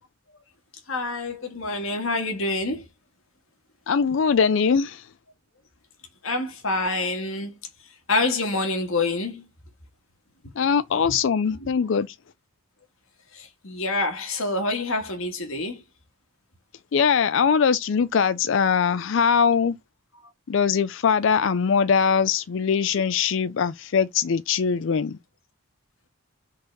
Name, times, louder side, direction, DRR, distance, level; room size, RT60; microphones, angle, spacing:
voice 1, 0.9-2.8 6.2-7.6 8.1-9.4 11.1-11.2 13.3-15.8, left 2 dB, 80° left, 1.7 m, -27 dB
voice 2, 3.9-5.1 10.6-12.2 16.9-19.8 20.5-25.2, left 6 dB, 60° left, 0.4 m, -21 dB
5.3 x 4.0 x 5.2 m
head